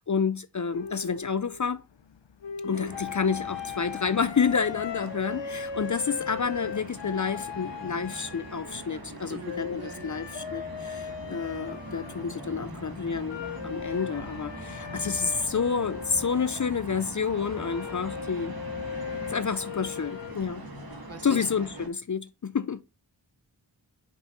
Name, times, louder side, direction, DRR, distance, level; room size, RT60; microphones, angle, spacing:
voice 1, 0.0-1.8 2.6-18.6 19.3-20.6 21.2-22.8, left 6 dB, 45° left, 0.5 m, -29 dB
sound 1, 0.7-20.4, left 7 dB, 85° left, 0.7 m, -39 dB
sound 2, 2.7-21.9, right 1 dB, 55° right, 1.7 m, -42 dB
voice 2, 9.3-10.2 21.1-21.5, right 3 dB, 35° right, 0.8 m, -42 dB
5.7 x 5.1 x 3.8 m
wide cardioid pair, 45°, 43 cm